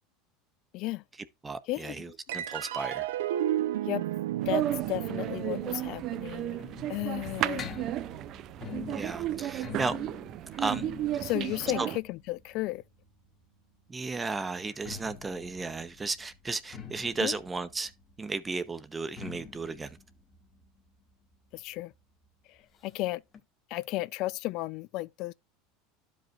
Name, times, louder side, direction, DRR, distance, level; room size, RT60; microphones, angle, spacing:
voice 1, 0.7-1.0 1.7-2.1 3.9-4.1 4.5-6.6 6.9-8.0 11.2-12.8 17.2-17.3 21.5-21.9 22.8-23.2 23.7-25.3, left 18 dB, 60° left, 0.4 m, -34 dB
voice 2, 1.4-3.1 8.9-10.0 10.6-10.9 11.8-11.9 13.9-17.9 18.2-20.0, right 3 dB, 15° right, 0.9 m, -34 dB
sound 1, 2.3-9.0, right 12 dB, 85° right, 0.7 m, -34 dB
sound 2, 4.4-12.0, right 13 dB, 50° right, 0.5 m, -33 dB
sound 3, 5.7-13.4 14.6-22.0 22.2-22.3 22.6-22.7 23.3-23.4, left 7 dB, 35° left, 1.8 m, -46 dB
12.5 x 5.3 x 2.4 m
supercardioid pair, 110°, 0 cm